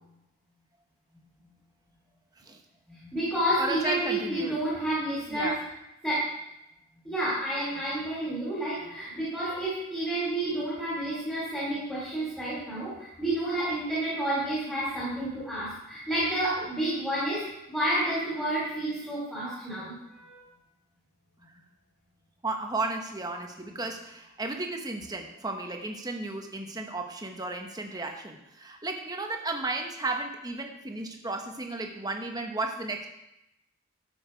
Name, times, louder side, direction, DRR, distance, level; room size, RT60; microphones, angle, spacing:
voice 1, 2.9-5.5 6.0-6.3 7.0-20.4, right 1 dB, 5° left, -9 dB, 3.2 m, -30 dB
voice 2, 3.6-4.5 5.3-5.6 22.4-33.1, right 2 dB, 15° right, 3 dB, 1.1 m, -34 dB
12.5 x 7.3 x 4.5 m, 0.87 s
head